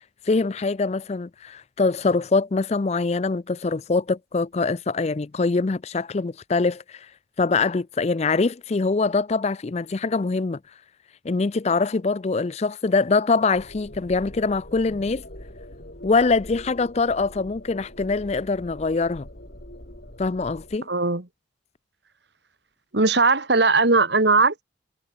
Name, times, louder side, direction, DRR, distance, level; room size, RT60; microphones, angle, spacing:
voice 1, 0.3-7.0 7.4-10.6 11.2-15.2 16.0-19.3 20.2-20.9, left 3 dB, 35° left, 0.4 m, -23 dB
sound 1, 13.5-20.8, left 1 dB, 50° left, 4.1 m, -43 dB
voice 2, 20.9-21.3 22.9-24.6, right 3 dB, 60° right, 1.8 m, -19 dB
head